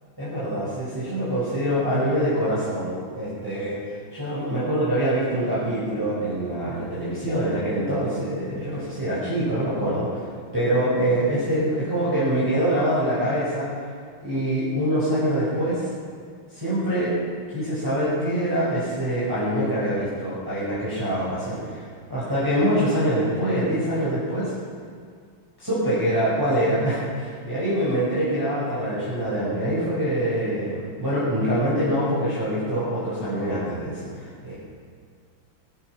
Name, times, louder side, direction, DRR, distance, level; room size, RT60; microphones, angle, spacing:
voice 1, 0.2-3.8 4.1-13.7 14.2-15.9 16.5-17.1 17.5-21.8 22.1-24.5 25.6-34.6, right 1 dB, 10° right, -11 dB, 5.0 m, -24 dB
21.0 x 10.5 x 6.0 m, 2.1 s
omnidirectional pair, 2.4 m